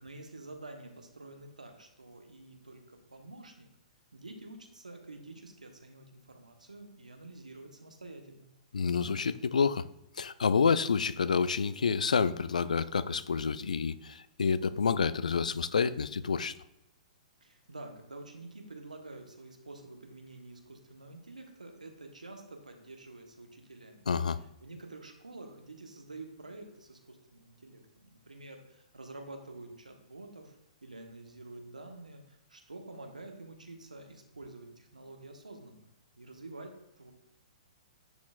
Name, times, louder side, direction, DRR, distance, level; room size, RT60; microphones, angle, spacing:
voice 1, 0.0-3.7 4.1-8.5 17.4-24.1 24.6-35.9 36.2-37.1, right 2 dB, 90° right, 4 dB, 1.1 m, -48 dB
voice 2, 8.7-9.9 10.2-16.5 24.1-24.4, left 5 dB, 80° left, 16 dB, 0.3 m, -28 dB
10.0 x 4.3 x 2.4 m, 0.85 s
figure-of-eight pair, 120°, 4 cm